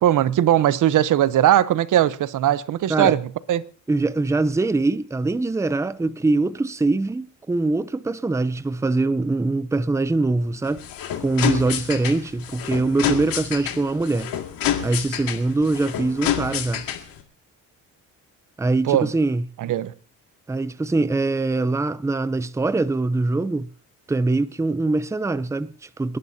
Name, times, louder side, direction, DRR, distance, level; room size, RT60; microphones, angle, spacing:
voice 1, 0.0-3.2 3.5-3.6 18.9-19.1 19.6-19.9, right 12 dB, 65° right, 0.9 m, -19 dB
voice 2, 3.9-10.8 11.2-14.3 14.8-16.8 18.6-19.4 20.5-23.7 24.1-26.2, right 2 dB, 10° right, 0.6 m, -23 dB
sound 1, 10.6-17.2, left 10 dB, 85° left, 2.3 m, -28 dB
30.0 x 11.0 x 2.8 m
cardioid pair, 95°, 34 cm